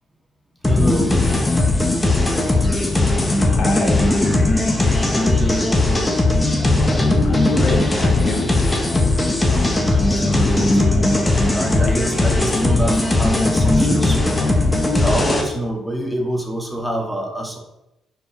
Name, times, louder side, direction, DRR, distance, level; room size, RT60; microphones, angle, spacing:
sound 1, 0.6-15.4, left 2 dB, 15° left, 1.5 m, -18 dB
voice 1, 0.7-1.2 3.1-3.4 5.1-5.7 9.5-10.8 11.5-14.5 14.9-17.6, right 1 dB, ahead, -1 dB, 2.2 m, -26 dB
voice 2, 3.4-4.1 7.2-8.9 9.3-9.4, left 3 dB, 60° left, 4 dB, 1.6 m, -28 dB
9.4 x 5.0 x 4.6 m, 0.92 s
cardioid pair, 90°, 0 cm